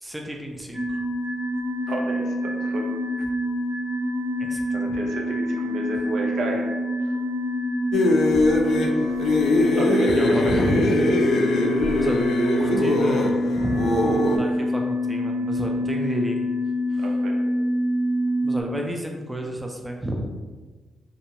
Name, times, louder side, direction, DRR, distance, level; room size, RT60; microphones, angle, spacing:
voice 1, 0.0-1.0 3.2-3.3 4.4-4.6 10.0-10.9 12.0-12.3 12.6-16.4 16.9-17.1 18.4-20.3, equal, 10° right, 1 dB, 0.4 m, -30 dB
sound 1, 0.7-18.6, equal, 35° right, 1.1 m, -26 dB
voice 2, 1.9-2.9 4.7-6.7 9.8-10.4 11.5-11.6 14.3-14.5 17.0-17.4, right 2 dB, 75° right, 0 dB, 0.4 m, -31 dB
sound 2, 7.9-14.4, left 2 dB, 75° left, 0.3 m, -22 dB
2.5 x 2.2 x 2.8 m, 1.3 s
cardioid pair, 100°, 0 cm